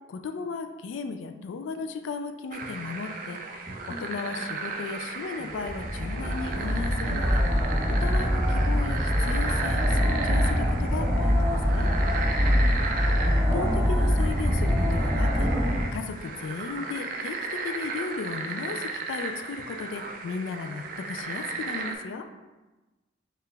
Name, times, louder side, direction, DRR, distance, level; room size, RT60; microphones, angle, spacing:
voice 1, 0.1-3.4 3.8-7.5 7.9-11.9 13.2-22.3, left 4 dB, 70° left, 6 dB, 0.3 m, -36 dB
sound 1, 2.5-22.0, right 4 dB, 45° right, 0.4 m, -35 dB
sound 2, 3.5-4.0 4.4-4.6 5.4-5.9 6.2-6.5 7.2-7.7 8.1-8.4 9.1-9.5 9.9-10.3, left 1 dB, 15° left, 0.9 m, -43 dB
sound 3, 5.6-15.8, equal, 20° right, 0.8 m, -24 dB
4.6 x 2.4 x 3.3 m, 1.2 s
head